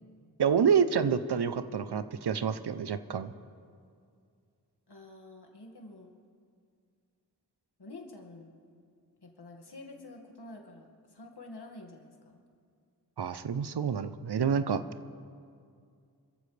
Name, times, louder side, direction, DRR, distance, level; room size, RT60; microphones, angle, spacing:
voice 1, 0.4-3.3 13.2-14.8, right 7 dB, 85° right, 12 dB, 0.7 m, -28 dB
voice 2, 4.9-6.1 7.8-8.5 9.2-12.4, left 2 dB, 85° left, 1 dB, 2.0 m, -48 dB
27.5 x 14.0 x 3.3 m, 2.3 s
wide cardioid pair, 40°, 39 cm